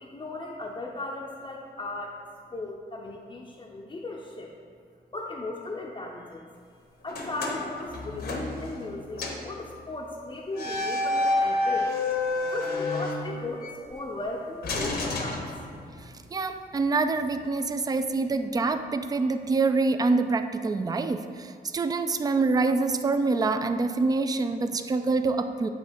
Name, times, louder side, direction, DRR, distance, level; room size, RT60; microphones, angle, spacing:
voice 1, 0.0-2.2 2.5-4.5 5.1-6.5 7.0-11.9 12.5-15.4, left 2 dB, 30° left, -3 dB, 0.6 m, -36 dB
sound 1, 7.1-8.9 9.2-9.5 10.5-13.7 14.6-16.0, left 2 dB, 70° left, 0.9 m, -29 dB
voice 2, 16.3-25.7, right 3 dB, 20° right, 9 dB, 0.3 m, -26 dB
7.5 x 2.8 x 5.1 m, 2.2 s
cardioid pair, 80°, 17 cm